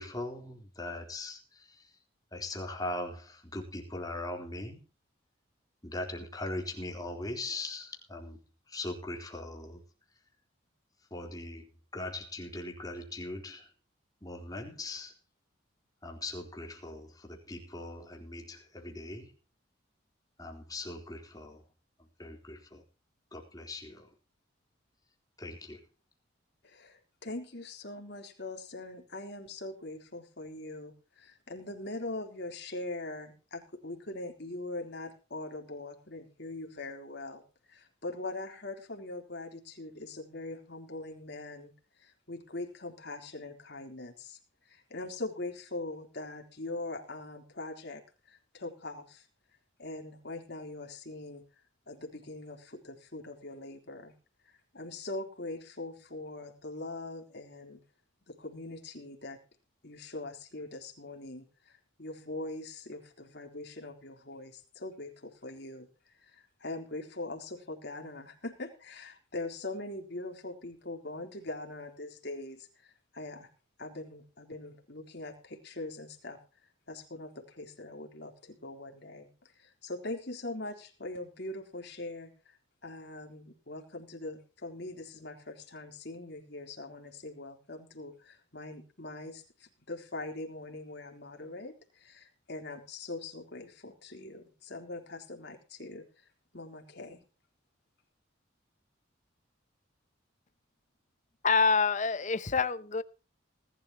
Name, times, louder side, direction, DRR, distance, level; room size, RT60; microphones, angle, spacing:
voice 1, 0.0-1.9 2.3-4.8 5.8-8.4 8.7-9.8 11.1-13.7 14.2-15.1 16.0-19.3 20.4-21.6 22.0-22.8 23.3-24.1 25.4-25.8, left 2 dB, 20° left, 3.8 m, -40 dB
voice 2, 26.6-41.7 42.0-44.4 44.7-48.0 48.3-49.3 49.8-51.4 51.9-54.1 54.5-57.8 58.3-59.4 59.8-65.9 66.2-73.5 73.8-76.4 76.9-79.3 79.6-82.6 82.8-96.0 96.5-97.2, left 2 dB, 55° left, 3.7 m, -42 dB
voice 3, 101.4-103.0, left 5 dB, 40° left, 0.8 m, -26 dB
20.0 x 12.0 x 3.0 m
head